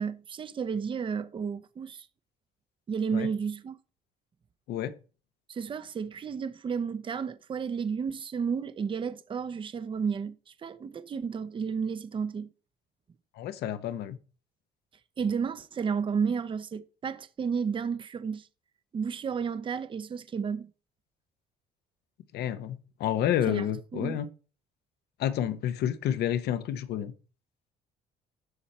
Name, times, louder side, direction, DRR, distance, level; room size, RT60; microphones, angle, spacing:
voice 1, 0.0-2.1 2.9-3.8 5.5-10.4 10.6-12.5 15.2-18.5 18.9-20.7 23.5-23.7 23.9-24.2, right 6 dB, 30° right, 0.6 m, -32 dB
voice 2, 13.4-14.2 22.3-24.3 25.2-27.1, left 10 dB, 75° left, 0.9 m, -29 dB
12.0 x 4.4 x 4.2 m
cardioid pair, 110°, 17 cm